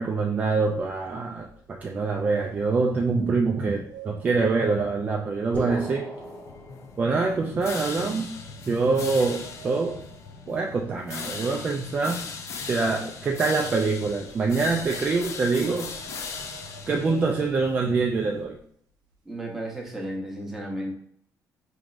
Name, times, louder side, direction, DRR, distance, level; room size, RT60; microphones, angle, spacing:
voice 1, 0.0-6.1 7.0-8.3 8.6-10.0 10.5-12.2 12.7-15.9 16.9-18.6, right 4 dB, 25° right, 0 dB, 0.3 m, -25 dB
sound 1, 0.6-6.0 6.3-6.6 7.1-7.2 8.1-11.4 11.6-17.9 18.5-18.6 18.9-19.2 19.5-20.1, right 5 dB, 90° right, 0.7 m, -49 dB
sound 2, 5.5-7.5, equal, 25° left, 0.8 m, -36 dB
sound 3, 6.1-18.5, left 5 dB, 50° left, 0.4 m, -39 dB
voice 2, 19.3-20.9, right 1 dB, 5° right, -1 dB, 0.8 m, -33 dB
4.7 x 3.0 x 2.5 m, 0.62 s
cardioid pair, 175°, 7 cm